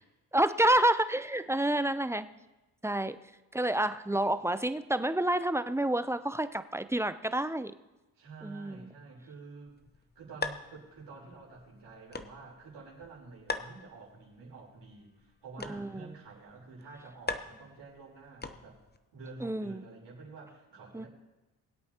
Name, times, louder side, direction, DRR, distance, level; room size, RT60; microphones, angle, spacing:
voice 1, 0.3-2.3 2.8-3.2 3.5-7.7 8.4-8.9 15.6-16.1 19.4-19.8 20.9-21.1, right 1 dB, 5° right, 12 dB, 0.5 m, -29 dB
voice 2, 8.1-9.8 10.2-18.8 19.1-21.1, right 4 dB, 75° right, -3 dB, 4.0 m, -49 dB
sound 1, 9.7-19.0, left 3 dB, 25° left, 0.9 m, -43 dB
21.5 x 8.5 x 2.9 m, 1.1 s
supercardioid pair, 55°, 42 cm